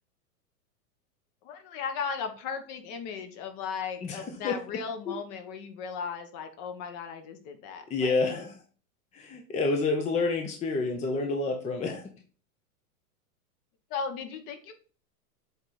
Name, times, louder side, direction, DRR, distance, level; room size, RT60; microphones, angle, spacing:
voice 1, 1.4-8.4 13.9-14.7, left 6 dB, 40° left, 7 dB, 1.3 m, -36 dB
voice 2, 4.0-4.6 5.1-5.2 7.9-8.6 9.1-12.1, left 3 dB, 15° left, 3 dB, 0.7 m, -29 dB
7.9 x 3.5 x 4.2 m, 0.40 s
hypercardioid pair, 120°, 47 cm